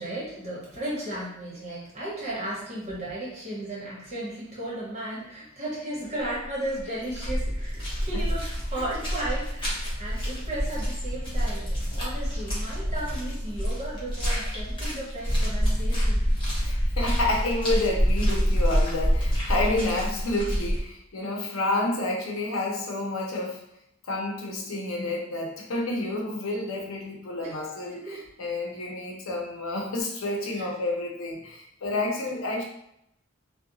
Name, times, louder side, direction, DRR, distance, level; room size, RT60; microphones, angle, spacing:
voice 1, 0.0-16.2 27.4-27.6 27.9-28.2 30.5-30.7, right 1 dB, 35° right, -7 dB, 1.1 m, -35 dB
sound 1, 6.2-6.5 6.8-20.8, equal, 25° left, 0.8 m, -27 dB
voice 2, 16.6-23.6 24.1-32.6, left 2 dB, 85° left, 0 dB, 0.6 m, -29 dB
2.8 x 2.2 x 2.6 m, 0.77 s
head